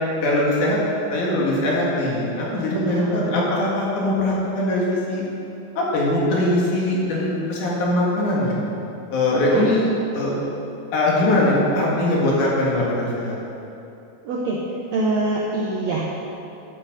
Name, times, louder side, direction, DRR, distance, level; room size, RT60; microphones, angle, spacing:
voice 1, 0.2-0.8 1.1-5.2 5.8-8.6 9.1-9.9 10.1-10.3 10.9-13.4, left 1 dB, 60° left, -4 dB, 3.2 m, -21 dB
voice 2, 2.7-3.3 9.3-9.7 14.2-16.0, right 2 dB, 75° right, -4 dB, 1.5 m, -25 dB
11.0 x 8.7 x 5.0 m, 2.9 s
omnidirectional pair, 4.3 m